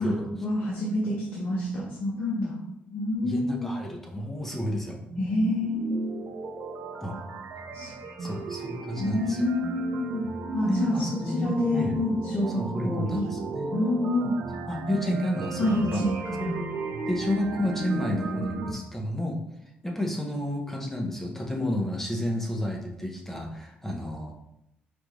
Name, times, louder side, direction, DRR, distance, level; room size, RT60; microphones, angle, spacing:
voice 1, 0.4-2.6 2.9-3.7 5.2-6.1 7.7-7.9 8.2-8.4 9.0-10.3 10.5-13.3 13.7-14.4 15.6-16.5, left 1 dB, 45° left, -5 dB, 1.0 m, -28 dB
voice 2, 3.2-5.0 7.0-7.2 8.2-9.4 10.6-11.9 12.6-13.7 14.7-16.1 16.4-16.6 17.1-19.4 19.8-24.3, left 1 dB, 10° left, 0 dB, 0.7 m, -31 dB
sound 1, 4.9-18.7, right 4 dB, 60° right, 0.5 m, -35 dB
5.0 x 2.4 x 3.0 m, 0.83 s
cardioid pair, 130°, 4 cm